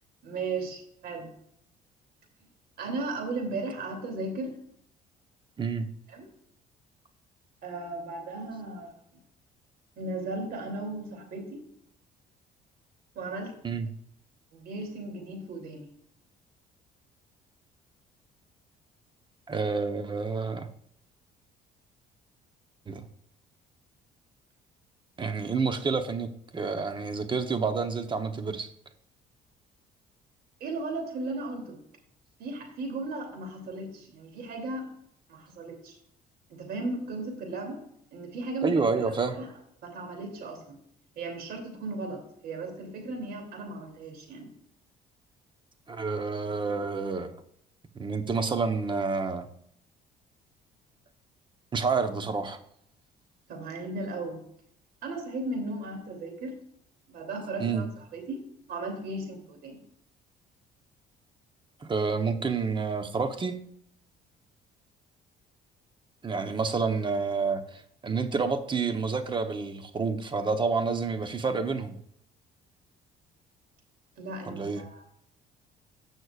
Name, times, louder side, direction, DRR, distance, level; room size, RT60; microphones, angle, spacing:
voice 1, 0.2-1.3 2.8-4.6 6.1-6.2 7.6-8.9 10.0-11.6 13.1-13.5 14.5-15.9 30.6-31.8 32.4-34.9 35.3-36.0 36.5-37.8 38.1-39.0 39.4-39.5 39.8-40.8 41.2-44.5 53.5-54.4 55.0-56.6 57.1-58.4 58.7-59.8 74.2-75.0, right 2 dB, 65° right, 3 dB, 3.0 m, -36 dB
voice 2, 19.5-20.7 22.9-23.0 25.2-28.7 38.6-39.4 45.9-47.3 47.9-49.5 51.7-52.6 57.6-57.9 61.9-63.6 66.2-72.0 74.5-74.8, right 4 dB, 30° right, 8 dB, 1.0 m, -29 dB
17.5 x 6.3 x 2.5 m, 0.70 s
cardioid pair, 110°, 17 cm